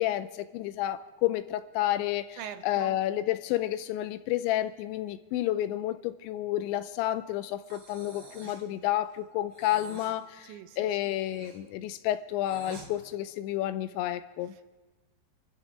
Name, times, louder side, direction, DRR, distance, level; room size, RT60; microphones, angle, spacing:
voice 1, 0.0-14.5, left 13 dB, 85° left, 13 dB, 2.9 m, -30 dB
voice 2, 2.4-3.0 10.4-11.1 14.5-14.7, right 10 dB, 80° right, 9 dB, 3.0 m, -44 dB
Breathing, 7.6-8.7 9.5-10.2 10.9-12.9, right 2 dB, 40° right, 2.4 m, -48 dB
27.0 x 13.0 x 3.5 m, 1.2 s
omnidirectional pair, 5.2 m